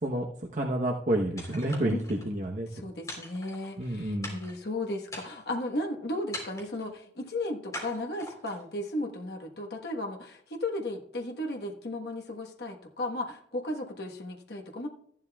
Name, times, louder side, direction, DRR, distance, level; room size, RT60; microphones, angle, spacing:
voice 1, 0.0-2.7 3.8-4.4, right 1 dB, 45° right, -1 dB, 1.0 m, -29 dB
sound 1, 1.4-2.3 3.1-3.9 4.2-4.7 5.1-5.6 6.3-6.9 7.7-8.6, left 1 dB, 20° left, 3.6 m, -42 dB
voice 2, 2.7-14.9, left 1 dB, 60° left, 2 dB, 1.3 m, -35 dB
14.5 x 11.5 x 2.3 m, 0.67 s
head